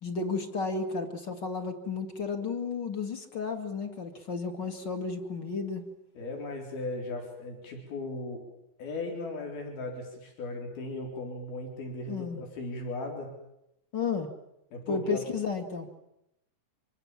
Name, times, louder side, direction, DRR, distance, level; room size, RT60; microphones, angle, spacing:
voice 1, 0.0-5.9 12.1-12.4 13.9-14.3 14.9-15.9, left 4 dB, 35° left, 7 dB, 2.1 m, -33 dB
voice 2, 6.2-8.4 8.8-13.3 14.7-15.2, left 2 dB, 85° left, 2 dB, 5.9 m, -37 dB
25.5 x 25.0 x 7.4 m, 0.84 s
omnidirectional pair, 4.2 m